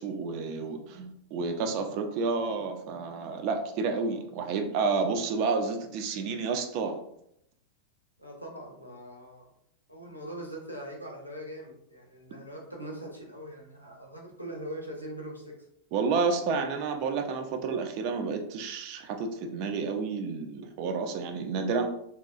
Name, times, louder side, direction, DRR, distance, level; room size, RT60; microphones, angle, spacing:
voice 1, 0.0-7.0 15.9-21.9, right 4 dB, 45° right, 5 dB, 0.4 m, -30 dB
voice 2, 8.2-9.5 9.9-15.7, right 1 dB, 90° left, -1 dB, 0.6 m, -42 dB
2.8 x 2.2 x 2.4 m, 0.75 s
figure-of-eight pair, 90°, 0 cm